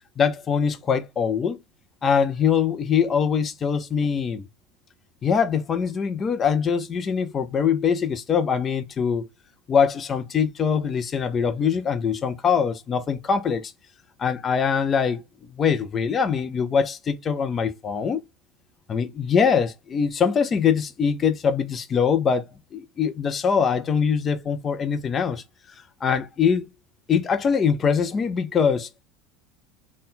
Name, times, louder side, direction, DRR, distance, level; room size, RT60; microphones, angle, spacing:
voice 1, 0.2-1.6 2.0-4.5 5.2-9.3 9.7-13.7 14.2-15.2 15.6-18.2 18.9-22.4 22.7-25.4 26.0-26.7 27.1-28.9, left 6 dB, 20° left, 0.4 m, -23 dB
4.2 x 2.2 x 3.7 m
cardioid pair, 170°, 0 cm